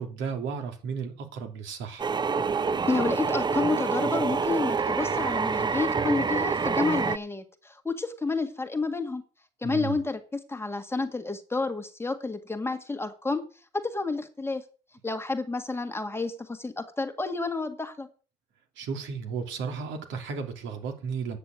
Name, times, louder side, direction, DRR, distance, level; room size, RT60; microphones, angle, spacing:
voice 1, 0.0-2.1 9.6-10.0 18.8-21.4, right 5 dB, 70° right, 2.8 m, -34 dB
sound 1, 2.0-7.2, right 5 dB, 20° right, 0.5 m, -27 dB
voice 2, 2.9-9.2 9.6-13.4 13.7-14.6 15.0-18.1, left 3 dB, 10° left, 1.7 m, -30 dB
9.2 x 6.7 x 8.2 m
cardioid pair, 95°, 20 cm